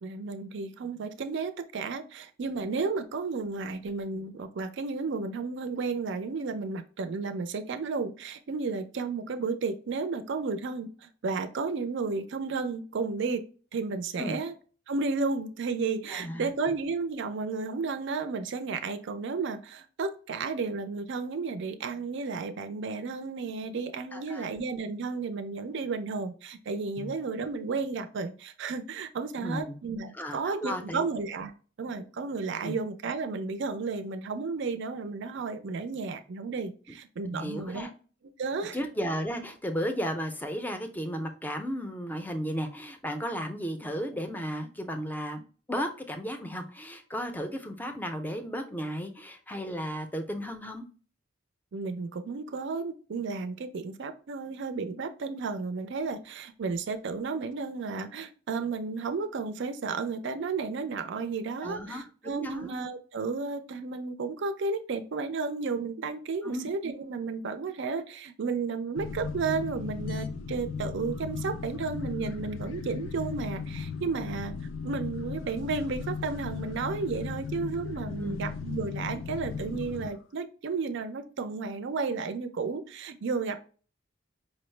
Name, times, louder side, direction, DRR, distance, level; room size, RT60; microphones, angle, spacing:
voice 1, 0.0-13.5 13.7-14.5 14.9-31.5 31.8-37.9 38.4-38.8 51.7-74.5 74.8-83.6, right 4 dB, 65° right, 8 dB, 0.4 m, -33 dB
voice 2, 16.1-16.5 24.1-24.5 27.0-27.1 29.4-29.8 30.1-31.1 32.6-32.8 37.3-37.9 38.7-45.4 45.7-50.8 61.6-62.7 66.4-66.7 78.2-78.4, equal, 10° left, 6 dB, 0.5 m, -34 dB
sound 1, 69.0-80.1, left 5 dB, 75° left, 0.4 m, -36 dB
5.2 x 2.0 x 3.1 m, 0.39 s
head